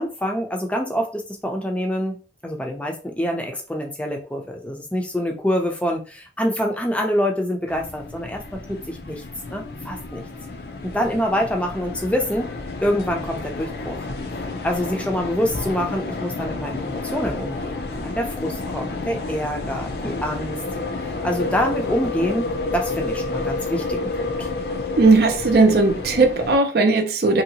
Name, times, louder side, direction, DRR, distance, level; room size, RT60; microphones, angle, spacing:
voice 1, 0.0-9.2 9.5-10.2 10.8-20.6 21.2-22.5 22.7-24.5, equal, 5° left, 0.5 m, -26 dB
sound 1, 7.7-26.6, left 3 dB, 60° left, 0.5 m, -30 dB
voice 2, 25.0-27.4, right 3 dB, 55° right, 0.5 m, -17 dB
3.0 x 2.8 x 2.8 m
head